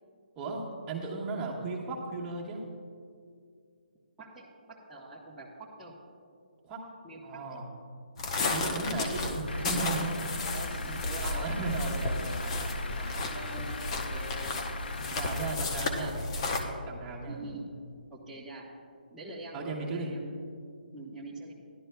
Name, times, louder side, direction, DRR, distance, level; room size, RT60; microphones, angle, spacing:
voice 1, 0.4-2.6 6.6-6.8 7.2-7.7 8.5-10.4 11.2-13.4 14.1-14.5 15.0-17.4 19.5-20.1, right 3 dB, 20° right, -3 dB, 1.3 m, -36 dB
voice 2, 4.2-5.9 7.0-7.4 8.6-8.9 10.5-11.6 13.0-14.5 15.2-16.1 17.3-17.7 18.1-18.6 19.1-20.4 20.9-21.5, right 2 dB, 5° right, -11 dB, 1.0 m, -45 dB
sound 1, 8.2-16.6, left 2 dB, 35° left, 0.9 m, -33 dB
Truck / Idling, 9.5-15.5, left 2 dB, 75° left, 0.5 m, -40 dB
14.0 x 11.5 x 2.3 m, 2.3 s
figure-of-eight pair, 150°, 5 cm